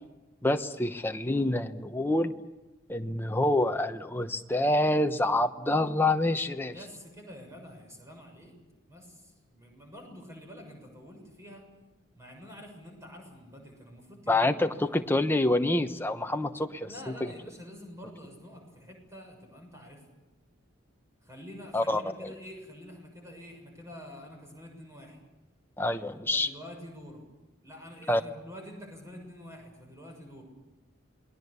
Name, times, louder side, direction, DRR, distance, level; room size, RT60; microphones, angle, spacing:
voice 1, 0.4-2.3 2.9-6.7 14.3-16.9 21.7-22.3 25.8-26.5 28.1-28.2, left 1 dB, 10° left, 7 dB, 1.0 m, -27 dB
voice 2, 6.7-8.6 8.9-11.7 12.1-15.2 16.9-20.0 21.2-25.2 26.0-27.2 27.6-30.4, equal, 15° right, 2 dB, 6.7 m, -47 dB
28.5 x 21.0 x 6.9 m, 1.1 s
head